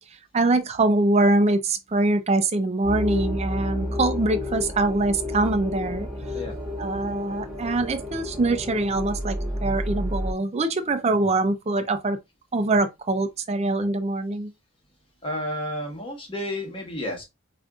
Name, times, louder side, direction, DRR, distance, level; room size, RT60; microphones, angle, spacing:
voice 1, 0.3-6.1 6.8-9.4 9.6-12.2 12.5-14.5, right 2 dB, 30° right, 0.4 m, -23 dB
sound 1, 2.8-10.3, left 1 dB, ahead, 0.9 m, -30 dB
voice 2, 15.2-17.2, left 1 dB, 25° left, 1.1 m, -31 dB
4.9 x 2.5 x 2.3 m
head